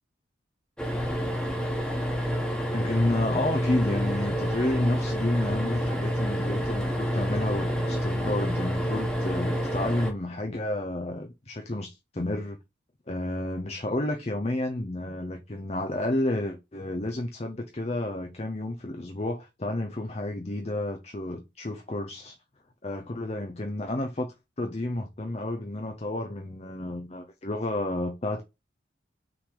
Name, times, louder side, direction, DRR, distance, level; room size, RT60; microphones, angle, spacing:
sound 1, 0.8-10.1, equal, 5° left, 1.4 m, -28 dB
voice 1, 2.7-12.6 13.1-22.4 22.8-28.4, left 1 dB, 35° left, 0.7 m, -31 dB
6.0 x 4.0 x 4.9 m
head